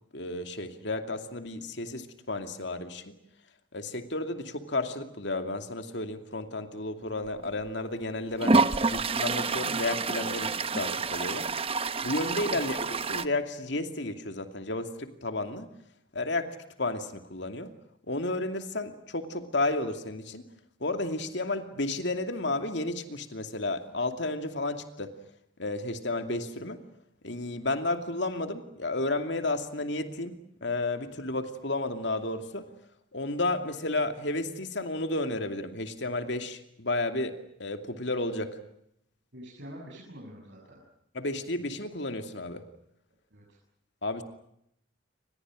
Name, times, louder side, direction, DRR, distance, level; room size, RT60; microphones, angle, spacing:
voice 1, 0.1-3.2 3.7-8.6 8.9-11.5 12.0-15.7 16.1-17.7 18.1-20.4 20.8-25.1 25.6-26.8 27.2-30.4 30.6-32.7 33.1-38.6 41.1-42.6 44.0-44.2, left 2 dB, 60° left, 7 dB, 2.6 m, -32 dB
Toilet flush, 7.4-7.5 8.4-13.3, right 3 dB, 30° right, 1.0 m, -28 dB
voice 2, 39.3-40.8 43.3-43.6, equal, 60° right, -2 dB, 7.4 m, -46 dB
30.0 x 26.5 x 6.4 m, 0.76 s
head